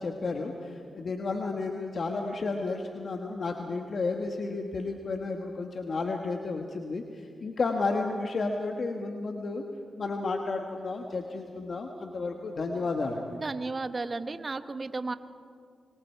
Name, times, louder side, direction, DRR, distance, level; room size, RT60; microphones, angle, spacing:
voice 1, 0.0-9.6 10.0-13.3, left 3 dB, 60° left, 3 dB, 1.6 m, -32 dB
voice 2, 13.4-15.1, right 3 dB, 40° right, 10 dB, 1.2 m, -33 dB
28.5 x 24.0 x 4.7 m, 2.1 s
cardioid pair, 50°, 0 cm